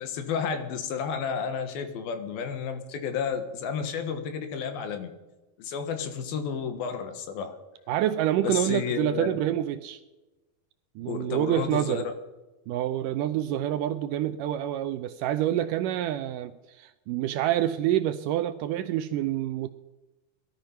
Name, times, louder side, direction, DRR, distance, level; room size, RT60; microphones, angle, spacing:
voice 1, 0.0-5.1 5.6-7.5 8.4-9.4 11.1-12.0, left 6 dB, 75° left, 8 dB, 3.2 m, -31 dB
voice 2, 7.9-10.0 11.0-12.1 12.7-19.7, right 12 dB, 80° right, 11 dB, 1.9 m, -27 dB
19.5 x 13.0 x 5.8 m, 1.1 s
omnidirectional pair, 4.3 m